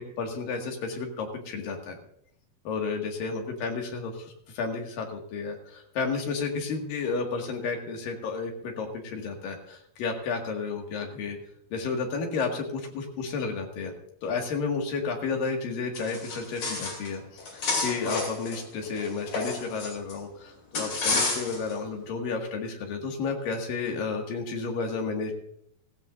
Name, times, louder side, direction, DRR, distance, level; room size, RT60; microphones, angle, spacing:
voice 1, 0.0-2.0 2.7-11.4 11.7-13.9 14.2-25.3, left 4 dB, 70° left, 2 dB, 3.5 m, -32 dB
sound 1, 15.9-17.1 17.4-20.1 20.7-21.7, left 3 dB, 50° left, 3.8 m, -30 dB
16.0 x 15.5 x 2.5 m, 0.73 s
omnidirectional pair, 4.2 m